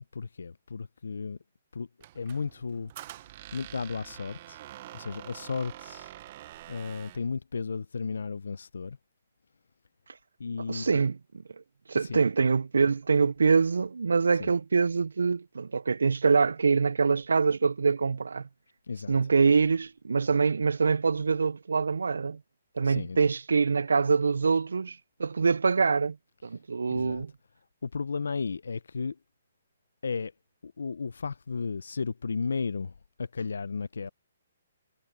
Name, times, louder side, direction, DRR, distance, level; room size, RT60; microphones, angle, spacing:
voice 1, 0.0-1.4 1.7-1.9 2.1-2.9 3.5-4.6 4.9-6.1 6.7-9.0 10.4-10.9 12.1-12.2 14.4-14.5 18.9-19.2 22.8-23.2 26.9-27.2 27.8-29.2 30.0-30.3 30.6-34.1, left 5 dB, 85° left, 0.5 m, -34 dB
Squeak, 2.0-7.3, right 14 dB, 40° right, 0.6 m, -46 dB
voice 2, 10.7-11.2 11.9-18.5 19.1-22.4 22.8-26.2 26.4-27.3, right 5 dB, 90° right, 0.3 m, -25 dB
hypercardioid pair, 150°, 0 cm